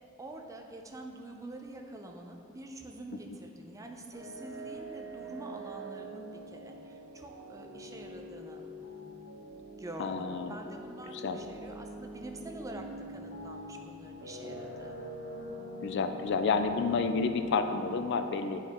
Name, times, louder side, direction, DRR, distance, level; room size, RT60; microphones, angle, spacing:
voice 1, 0.2-9.2 9.8-14.9, right 1 dB, 15° right, 2 dB, 0.5 m, -46 dB
sound 1, 4.1-17.8, right 1 dB, 60° right, 1.4 m, -44 dB
voice 2, 10.0-10.6 11.1-11.4 15.8-18.6, left 4 dB, 60° left, 8 dB, 0.4 m, -30 dB
9.0 x 4.6 x 3.5 m, 2.7 s
head